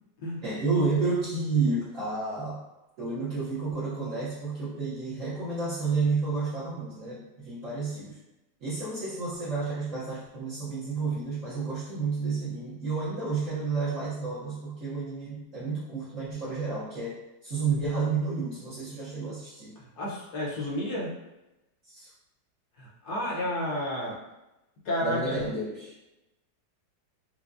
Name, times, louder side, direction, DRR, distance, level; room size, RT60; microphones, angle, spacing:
voice 1, 0.4-2.6 3.0-8.2 8.6-19.8 21.8-22.1 25.0-25.9, right 4 dB, 55° right, -10 dB, 1.0 m, -31 dB
voice 2, 20.0-21.1 22.8-24.1 24.8-25.4, equal, 60° left, -5 dB, 1.3 m, -31 dB
4.6 x 2.2 x 2.5 m, 0.96 s
omnidirectional pair, 2.1 m